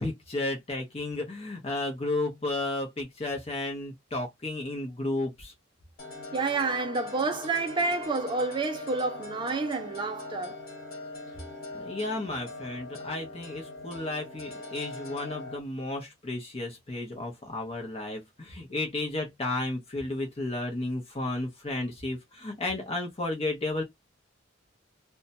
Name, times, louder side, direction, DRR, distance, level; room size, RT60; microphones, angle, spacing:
voice 1, 0.0-5.5 11.7-23.8, left 2 dB, 30° left, 0.7 m, -33 dB
sound 1, 6.0-15.6, left 2 dB, 50° left, 1.4 m, -42 dB
voice 2, 6.3-10.7, right 3 dB, 25° right, 0.4 m, -29 dB
2.7 x 2.2 x 2.6 m
head